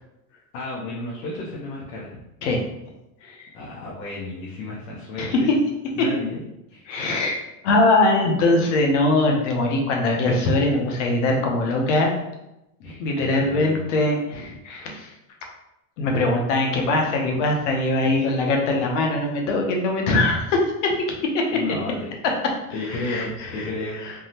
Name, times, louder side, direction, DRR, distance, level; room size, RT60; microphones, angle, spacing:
voice 1, 0.5-2.2 3.5-5.5 6.0-6.4 6.7-6.8 12.8-13.8 18.1-18.3 21.5-22.1 22.7-24.0, left 2 dB, 85° left, -6 dB, 0.9 m, -32 dB
voice 2, 5.2-5.5 6.9-7.4 7.6-12.1 13.0-15.1 16.0-20.6 21.3-21.4 22.9-23.7 24.0-24.1, left 2 dB, 50° left, 1 dB, 0.6 m, -21 dB
3.5 x 2.0 x 2.8 m, 0.90 s
supercardioid pair, 175°, 48 cm